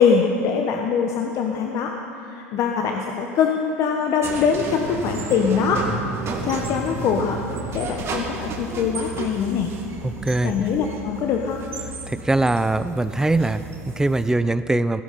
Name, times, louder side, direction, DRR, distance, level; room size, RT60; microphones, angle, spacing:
voice 1, 0.0-5.9 6.4-7.4 7.7-9.7 10.4-11.6, left 6 dB, 45° left, 2 dB, 1.2 m, -23 dB
sound 1, 4.2-14.3, right 3 dB, 35° right, 2.2 m, -32 dB
voice 2, 10.0-10.5 12.1-15.0, right 2 dB, 10° right, 13 dB, 0.6 m, -22 dB
16.5 x 15.0 x 4.3 m, 2.8 s
hypercardioid pair, 80°, 7 cm